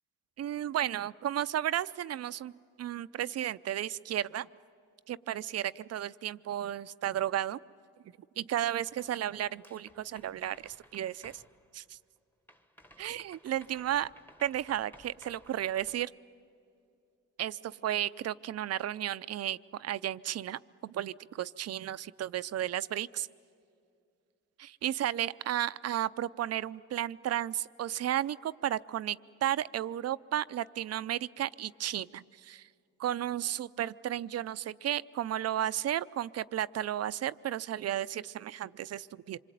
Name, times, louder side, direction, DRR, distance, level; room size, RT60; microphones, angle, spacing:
voice 1, 0.4-2.5 2.8-4.5 5.1-7.6 8.4-11.4 11.7-12.0 13.0-14.1 14.4-16.1 17.4-23.3 24.6-32.7 33.0-39.4, right 11 dB, 55° right, 15 dB, 0.6 m, -33 dB
sound 1, 8.9-12.2 12.5-16.1, equal, 5° left, 1.3 m, -58 dB
26.0 x 23.5 x 9.2 m, 2.5 s
cardioid pair, 90°, 30 cm